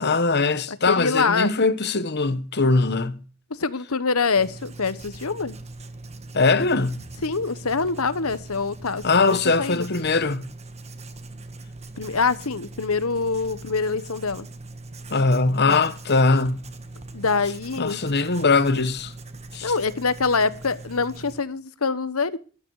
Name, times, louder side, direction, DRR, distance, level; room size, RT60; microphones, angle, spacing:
voice 1, 0.0-3.2 6.3-7.0 9.0-10.5 15.1-16.7 17.8-19.1 19.5-19.7, left 3 dB, 50° left, 1.1 m, -21 dB
voice 2, 0.7-1.5 3.5-5.6 7.2-9.9 12.0-14.5 15.7-15.8 17.1-18.0 19.6-22.4, left 4 dB, 75° left, 1.1 m, -25 dB
Writing, 4.3-21.4, right 2 dB, 30° right, 1.4 m, -41 dB
13.5 x 12.0 x 4.8 m
head